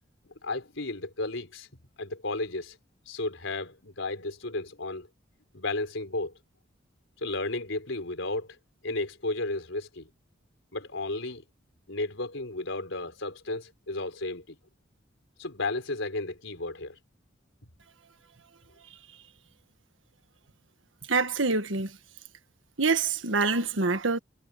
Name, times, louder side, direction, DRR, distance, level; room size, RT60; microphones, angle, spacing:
voice 1, 0.4-1.7 2.0-2.8 3.1-5.1 5.5-6.3 7.2-8.6 8.8-10.1 10.7-11.4 11.9-14.6 15.4-17.0, left 2 dB, 80° left, 4.2 m, -33 dB
voice 2, 21.1-21.9 22.8-24.2, right 4 dB, 80° right, 1.6 m, -25 dB
head